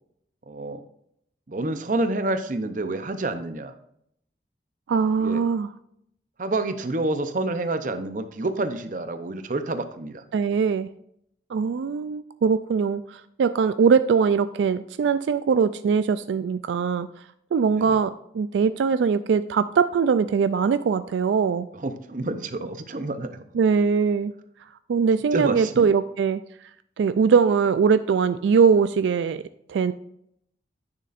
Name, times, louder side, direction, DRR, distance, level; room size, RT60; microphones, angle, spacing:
voice 1, 0.5-0.8 1.5-3.7 5.2-5.4 6.4-10.2 17.8-18.0 21.7-23.4 25.3-25.9, right 2 dB, 45° right, 9 dB, 0.6 m, -28 dB
voice 2, 4.9-5.7 10.3-10.9 11.5-17.1 17.5-21.7 23.5-24.3 24.9-26.4 27.0-29.4 29.7-29.9, right 6 dB, 85° right, 12 dB, 0.3 m, -21 dB
9.6 x 6.7 x 2.5 m, 0.73 s
head